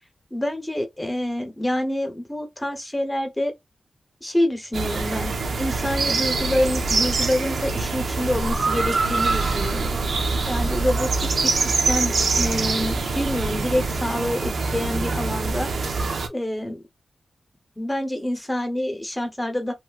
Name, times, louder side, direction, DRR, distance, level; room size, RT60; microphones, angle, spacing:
voice 1, 0.3-3.5 4.2-5.3 5.6-10.0 10.5-15.7 16.3-16.8 17.8-19.7, left 1 dB, 10° left, 0.9 m, -27 dB
sound 1, 4.7-16.3, right 3 dB, 70° right, 0.7 m, -24 dB
3.1 x 2.7 x 2.3 m
wide cardioid pair, 145°, 0 cm